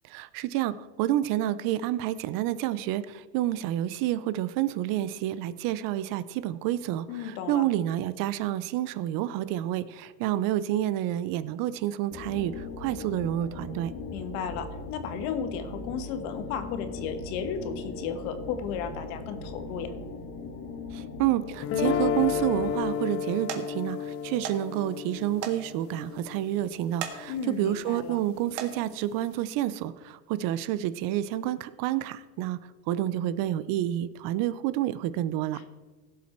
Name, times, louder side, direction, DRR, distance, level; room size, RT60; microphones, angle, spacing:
voice 1, 0.0-13.9 20.9-32.6 32.9-35.6, right 13 dB, 50° right, 15 dB, 0.6 m, -29 dB
voice 2, 7.1-7.6 14.1-19.9 27.3-28.2, left 7 dB, 70° left, 9 dB, 1.6 m, -34 dB
sound 1, 12.1-22.7, left 3 dB, 50° left, 2.0 m, -39 dB
sound 2, 21.6-27.7, left 7 dB, 30° left, 0.6 m, -32 dB
sound 3, 23.5-23.6 24.4-24.6 24.9-25.0 25.4-25.6 26.0-26.1 26.8-27.2 27.7-27.9 28.4-28.7 29.7-29.8 30.3-30.4, right 9 dB, 65° right, 1.8 m, -36 dB
16.5 x 7.5 x 4.4 m, 1.3 s
supercardioid pair, 145°, 45 cm